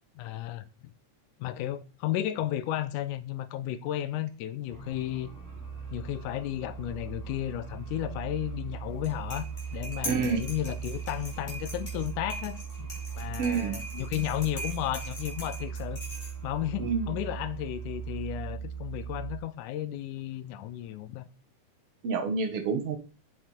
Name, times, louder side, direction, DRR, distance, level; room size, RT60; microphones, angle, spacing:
voice 1, 0.2-0.7 1.4-5.3 5.9-12.9 13.2-16.0 16.4-21.3, left 13 dB, 85° left, 2.2 m, -33 dB
sound 1, 4.7-19.4, right 7 dB, 25° right, 2.7 m, -39 dB
sound 2, 8.9-16.6, equal, 15° left, 3.3 m, -42 dB
voice 2, 10.1-10.5 13.4-13.8 16.8-17.1 22.0-23.0, right 5 dB, 60° right, 1.9 m, -28 dB
7.8 x 6.7 x 4.3 m
omnidirectional pair, 3.5 m